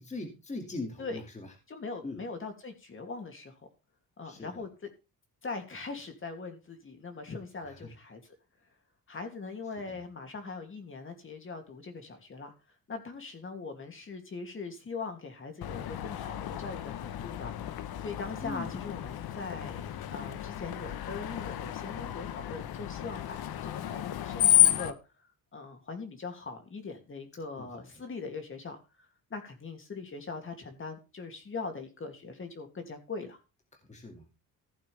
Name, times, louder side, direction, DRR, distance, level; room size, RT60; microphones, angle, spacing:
voice 1, 0.0-1.5 2.0-2.2 4.2-4.7 7.6-7.9 9.9-10.0 18.4-18.7 27.6-27.7 33.7-34.3, left 2 dB, 20° left, 3 dB, 2.3 m, -41 dB
voice 2, 1.7-3.5 4.2-4.9 5.4-8.3 9.1-12.5 12.9-17.5 18.0-25.0 25.5-33.4, left 4 dB, 35° left, 5 dB, 2.7 m, -41 dB
Screech, 15.6-24.9, left 13 dB, 80° left, 1.1 m, -31 dB
15.5 x 8.5 x 3.4 m, 0.29 s
cardioid pair, 135°, 37 cm